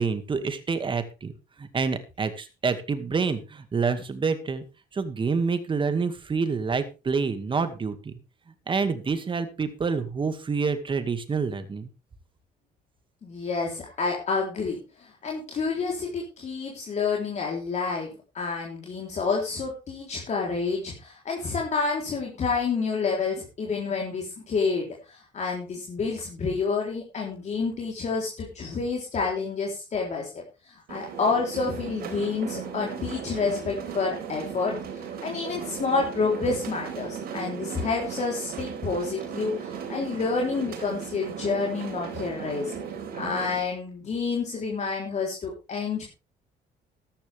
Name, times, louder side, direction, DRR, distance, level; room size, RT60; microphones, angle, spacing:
voice 1, 0.0-1.3 1.6-4.6 4.9-8.1 8.7-11.9, right 5 dB, 30° right, 9 dB, 2.1 m, -27 dB
voice 2, 13.2-34.7 35.2-42.7 43.1-46.0, left 4 dB, 40° left, -1 dB, 3.7 m, -29 dB
sound 1, 30.9-43.6, right 7 dB, 65° right, 4.2 m, -36 dB
13.5 x 11.5 x 3.5 m, 0.29 s
cardioid pair, 110°, 17 cm